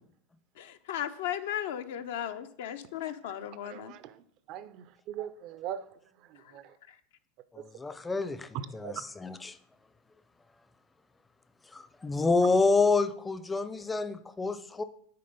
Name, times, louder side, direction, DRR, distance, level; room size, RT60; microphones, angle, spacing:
voice 1, 0.6-3.8, left 11 dB, 75° left, 9 dB, 0.5 m, -36 dB
voice 2, 4.5-5.9 6.2-6.8 7.6-7.7 8.5-9.0 12.4-12.6, right 10 dB, 55° right, 15 dB, 0.4 m, -40 dB
voice 3, 7.5-8.5 8.7-8.9 9.2-9.6 11.7-14.8, left 3 dB, 15° left, 13 dB, 0.5 m, -28 dB
6.7 x 3.9 x 5.2 m, 0.63 s
hypercardioid pair, 95°, 0 cm